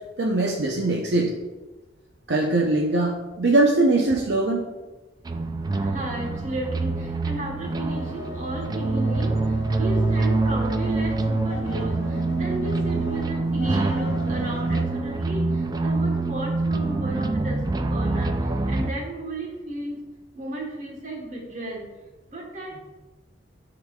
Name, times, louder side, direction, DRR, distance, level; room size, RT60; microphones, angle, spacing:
voice 1, 0.2-1.3 2.3-4.7, right 2 dB, 70° right, -2 dB, 0.7 m, -21 dB
sound 1, 5.3-18.9, right 3 dB, 20° right, 0.3 m, -25 dB
voice 2, 5.7-20.0 20.3-22.0 22.3-22.8, right 1 dB, 45° right, 0 dB, 1.2 m, -34 dB
sound 2, 7.9-14.8, left 2 dB, 80° left, 0.7 m, -39 dB
10.5 x 3.9 x 2.3 m, 1.1 s
head